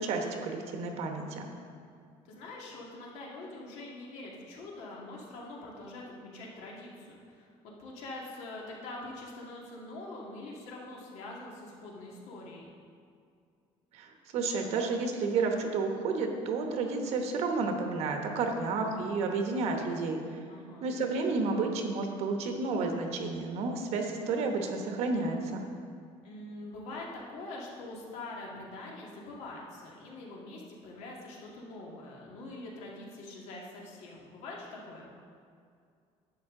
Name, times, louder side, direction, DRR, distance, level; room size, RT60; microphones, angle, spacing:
voice 1, 0.0-1.5 13.9-20.2 20.8-25.7, right 4 dB, 65° right, 3 dB, 1.1 m, -31 dB
voice 2, 2.2-12.7 20.5-20.9 26.2-35.1, left 2 dB, 70° left, -2 dB, 2.0 m, -44 dB
11.0 x 8.2 x 3.8 m, 2.3 s
cardioid pair, 170°, 12 cm